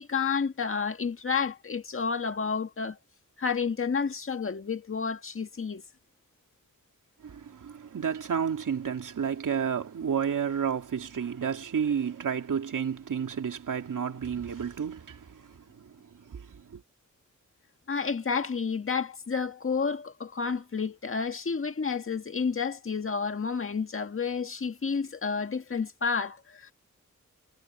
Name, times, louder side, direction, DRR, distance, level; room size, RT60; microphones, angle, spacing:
voice 1, 0.0-3.0 3.4-5.8 17.9-26.7, left 5 dB, 45° left, 1.8 m, -30 dB
voice 2, 7.2-15.9 16.3-16.8, right 7 dB, 90° right, 2.8 m, -31 dB
wide cardioid pair, 170°, 31 cm